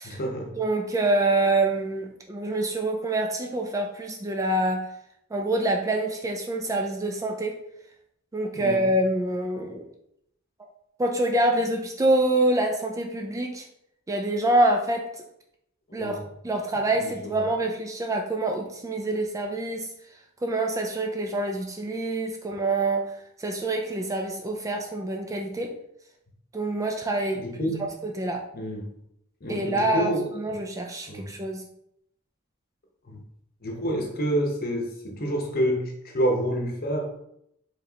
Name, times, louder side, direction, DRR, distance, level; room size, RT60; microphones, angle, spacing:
voice 1, 0.0-0.6 8.5-8.9 9.5-9.6 15.9-16.2 17.0-17.1 17.4-17.5 27.3-27.9 28.5-28.9 29.4-30.2 31.1-31.4 33.1-33.2 33.6-37.2, equal, 45° left, 1 dB, 0.8 m, -28 dB
voice 2, 0.6-4.9 5.3-7.6 8.3-9.9 11.0-13.6 14.1-15.1 15.9-16.2 16.4-19.9 20.4-25.7 26.5-27.8 28.0-28.4 29.5-31.6, right 2 dB, 15° right, 2 dB, 0.3 m, -26 dB
4.9 x 3.1 x 2.8 m, 0.76 s
head